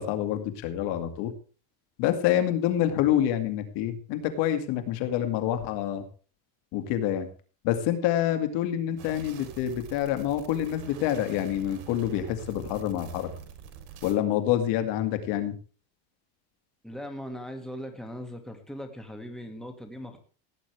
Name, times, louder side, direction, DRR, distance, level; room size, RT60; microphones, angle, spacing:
voice 1, 0.0-1.3 2.0-6.0 6.7-7.3 7.6-13.3 14.0-15.5, left 11 dB, 70° left, 7 dB, 2.3 m, -27 dB
sound 1, 9.0-14.1, right 8 dB, 75° right, 3.6 m, -45 dB
voice 2, 16.8-20.2, equal, ahead, 4 dB, 2.0 m, -39 dB
17.5 x 9.4 x 3.4 m, 0.39 s
cardioid pair, 135°, 44 cm